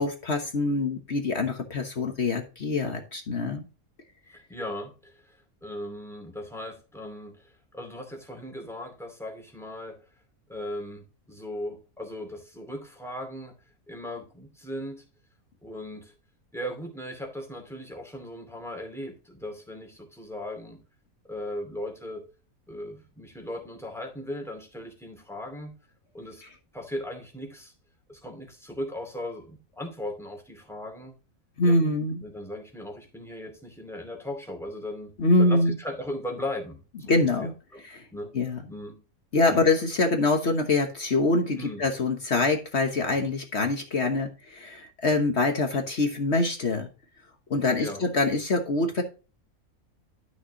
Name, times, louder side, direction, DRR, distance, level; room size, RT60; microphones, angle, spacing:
voice 1, 0.0-3.7 26.4-26.5 31.6-32.2 35.2-35.7 37.1-37.5 37.8-38.1 38.3-38.6 39.3-46.9 47.5-49.0, left 2 dB, 50° left, 5 dB, 1.4 m, -25 dB
voice 2, 4.3-10.0 10.5-13.5 13.9-15.0 15.6-16.1 16.5-20.8 21.3-22.2 22.7-25.7 26.1-26.4 26.7-27.7 28.1-31.1 31.6-31.9 32.2-35.1 35.4-37.8 38.1-38.3 38.7-39.0 39.4-39.7 41.6-41.8 47.7-48.0, left 1 dB, ahead, 2 dB, 2.4 m, -38 dB
12.0 x 6.4 x 2.9 m, 0.34 s
omnidirectional pair, 1.5 m